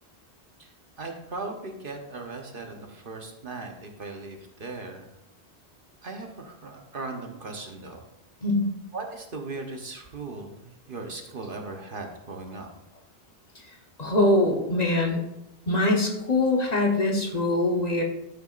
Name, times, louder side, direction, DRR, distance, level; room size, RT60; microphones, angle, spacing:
voice 1, 1.0-5.2 6.0-8.1 8.9-12.7, right 3 dB, 55° right, 3 dB, 1.1 m, -38 dB
voice 2, 14.0-15.2 15.7-18.0, left 2 dB, 40° left, 1 dB, 1.2 m, -23 dB
12.5 x 6.8 x 2.5 m, 0.91 s
omnidirectional pair, 1.1 m